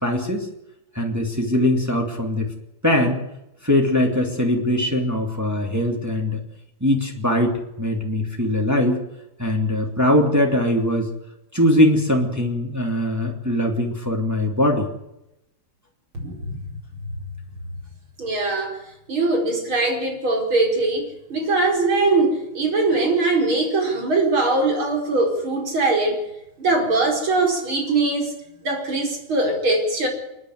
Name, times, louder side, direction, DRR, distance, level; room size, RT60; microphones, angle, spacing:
voice 1, 0.0-0.5 0.9-2.5 2.8-3.2 3.6-6.4 6.8-9.0 9.4-11.1 11.5-14.9, left 1 dB, 10° right, 1 dB, 2.8 m, -21 dB
voice 2, 16.1-16.6 18.2-18.8 19.1-21.1 21.3-26.2 26.6-28.3 28.6-30.1, right 2 dB, 70° right, 1 dB, 5.5 m, -21 dB
28.5 x 10.5 x 9.5 m, 0.89 s
omnidirectional pair, 2.3 m